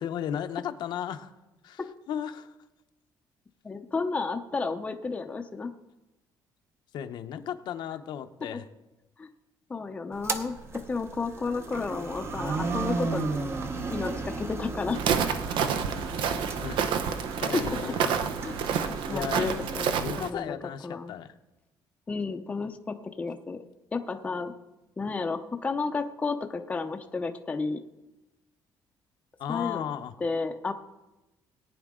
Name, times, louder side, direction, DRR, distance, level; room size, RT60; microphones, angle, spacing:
voice 1, 0.0-1.3 1.6-1.8 2.1-2.5 6.9-8.6 16.6-17.0 17.4-18.2 19.1-19.5 20.0-21.3 29.4-30.1, left 9 dB, 65° left, 8 dB, 0.7 m, -35 dB
voice 2, 3.6-5.7 9.2-9.3 9.7-13.5 13.9-15.0 17.5-17.8 18.4-18.6 19.1-19.9 20.2-20.6 20.8-21.1 22.1-23.6 23.9-24.5 25.0-27.8 29.5-29.8 30.2-30.7, left 4 dB, 15° left, 5 dB, 0.6 m, -32 dB
sound 1, 10.1-20.1, right 3 dB, 30° right, 0.8 m, -35 dB
Walk footsteps, 14.9-20.3, right 7 dB, 75° right, 0.8 m, -29 dB
18.5 x 9.5 x 3.7 m, 1.0 s
cardioid pair, 160°, 8 cm